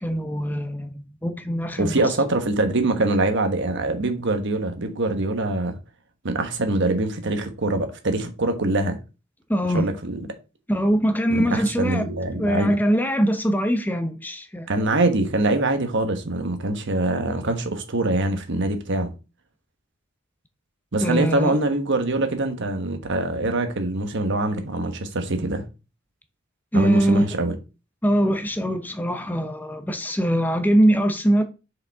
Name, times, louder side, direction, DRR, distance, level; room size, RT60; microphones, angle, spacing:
voice 1, 0.0-1.9 9.5-9.9 10.7-12.1 12.4-14.7 21.0-21.5 26.7-27.3 28.0-31.4, equal, 10° left, 0.7 m, -22 dB
voice 2, 1.8-5.8 6.2-9.0 9.7-10.3 11.3-12.7 14.7-19.1 20.9-25.7 26.7-27.5, right 2 dB, 65° right, 1.1 m, -24 dB
6.3 x 5.1 x 3.5 m
head